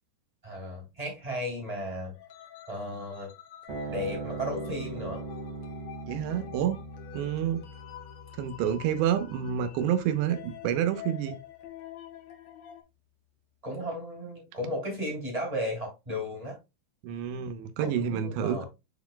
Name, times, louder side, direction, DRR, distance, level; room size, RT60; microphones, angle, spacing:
voice 1, 0.4-2.1 2.7-3.3 3.9-5.2 13.6-16.5 17.8-18.7, equal, 10° right, 2.4 m, -34 dB
sound 1, 2.1-12.8, left 11 dB, 80° left, 1.5 m, -47 dB
sound 2, 3.7-10.3, right 3 dB, 45° right, 2.5 m, -41 dB
voice 2, 6.1-6.8 7.1-7.6 8.4-11.4 17.0-18.7, right 9 dB, 75° right, 2.9 m, -28 dB
10.5 x 4.3 x 2.2 m
omnidirectional pair, 5.4 m